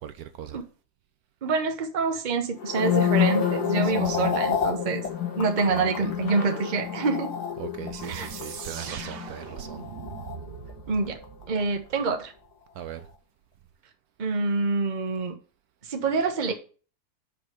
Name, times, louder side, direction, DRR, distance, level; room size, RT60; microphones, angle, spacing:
voice 1, 0.0-0.6 3.8-4.3 5.7-6.1 7.6-9.8 12.8-13.1, right 10 dB, 75° right, 1.1 m, -38 dB
voice 2, 1.4-5.0 5.4-7.3 8.0-8.3 8.9-9.1 10.9-11.2 11.5-12.3 14.2-15.4 15.9-16.5, right 4 dB, 35° right, 1.0 m, -26 dB
sound 1, 2.6-11.0 11.2-11.6, left 8 dB, 80° left, 1.7 m, -29 dB
sound 2, 2.6-9.5, left 3 dB, 65° left, 2.1 m, -46 dB
sound 3, 7.9-12.5, right 8 dB, 60° right, 0.6 m, -42 dB
5.3 x 5.1 x 6.2 m
omnidirectional pair, 1.7 m